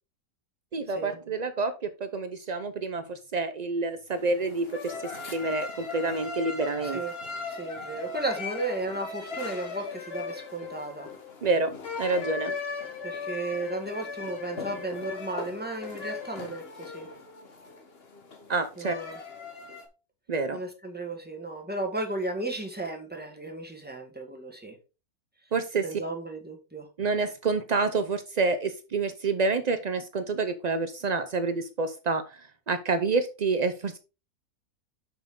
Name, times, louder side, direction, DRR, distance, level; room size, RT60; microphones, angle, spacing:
voice 1, 0.7-1.7 2.0-7.0 11.4-12.5 18.5-18.9 20.3-20.6 25.5-26.0 27.0-34.0, right 3 dB, 65° right, 0.4 m, -28 dB
sound 1, 4.1-19.9, left 4 dB, 40° left, 1.4 m, -38 dB
voice 2, 6.8-7.1 7.5-11.1 13.0-17.1 18.8-19.2 20.5-24.8 25.8-26.9, right 2 dB, 5° right, 1.6 m, -34 dB
6.9 x 6.1 x 3.7 m
omnidirectional pair, 1.6 m